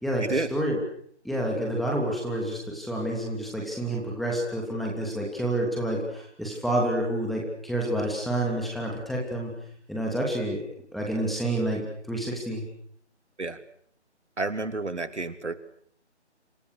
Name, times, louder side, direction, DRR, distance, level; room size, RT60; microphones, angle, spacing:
voice 1, 0.0-0.8 1.2-9.5 9.9-10.6 10.9-12.6, right 1 dB, ahead, -2 dB, 3.0 m, -29 dB
voice 2, 14.4-15.5, right 3 dB, 75° right, 10 dB, 3.2 m, -30 dB
29.5 x 27.0 x 6.7 m, 0.65 s
figure-of-eight pair, 155°, 35 cm